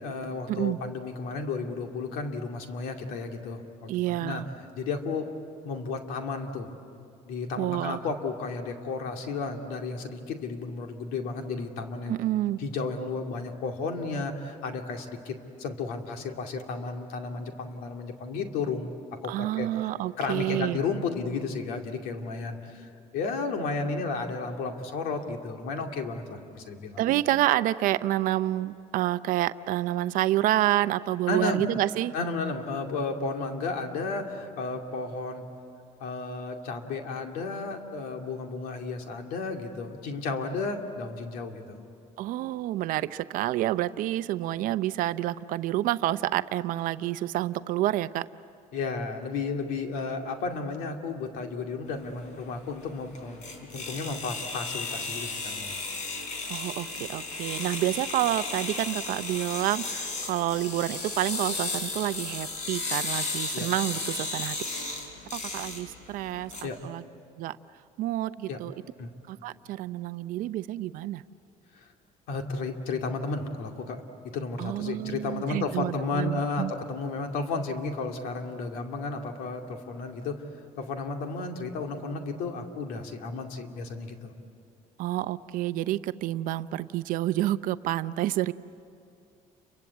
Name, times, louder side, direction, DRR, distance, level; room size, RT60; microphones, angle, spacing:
voice 1, 0.0-5.3 5.6-6.7 7.2-12.2 12.6-18.9 19.2-19.7 20.2-27.0 31.3-31.6 32.1-35.4 36.0-41.8 48.7-55.8 63.5-63.7 66.6-66.8 68.5-68.6 69.0-69.1 71.7-71.9 72.3-80.4 80.8-84.3, left 4 dB, 85° left, 4 dB, 2.5 m, -33 dB
voice 2, 3.9-4.5 7.6-8.0 12.1-12.6 19.3-20.8 27.0-32.1 42.2-48.3 56.5-64.5 65.3-66.5 66.8-67.0 67.4-67.6 68.0-68.7 69.3-71.2 74.6-76.7 85.0-88.5, right 14 dB, 70° right, 14 dB, 0.6 m, -28 dB
sound 1, 51.9-66.6, left 3 dB, 55° left, 4.4 m, -34 dB
29.5 x 24.0 x 8.4 m, 2.5 s
cardioid pair, 140°, 15 cm